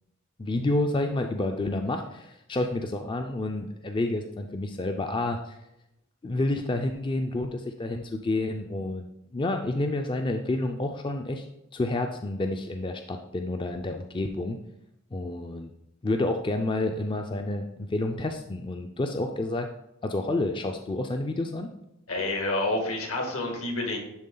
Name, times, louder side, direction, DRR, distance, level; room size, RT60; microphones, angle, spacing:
voice 1, 0.4-5.6 6.2-11.4 11.7-14.6 15.1-15.7 16.0-19.7 20.0-21.7, left 2 dB, 20° left, 5 dB, 0.3 m, -29 dB
voice 2, 22.1-24.0, left 2 dB, 75° left, 2 dB, 1.7 m, -28 dB
10.5 x 3.6 x 3.8 m, 0.84 s
head